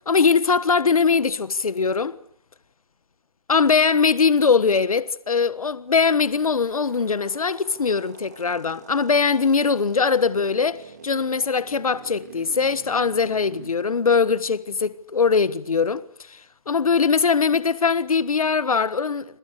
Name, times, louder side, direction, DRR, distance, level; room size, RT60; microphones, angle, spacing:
voice 1, 0.1-2.2 3.5-16.4 16.7-19.3, left 5 dB, 75° left, 1.4 m, -21 dB
sound 1, 6.2-13.7, right 6 dB, 30° right, 2.8 m, -46 dB
27.0 x 27.0 x 6.6 m
hypercardioid pair, 175°, 18 cm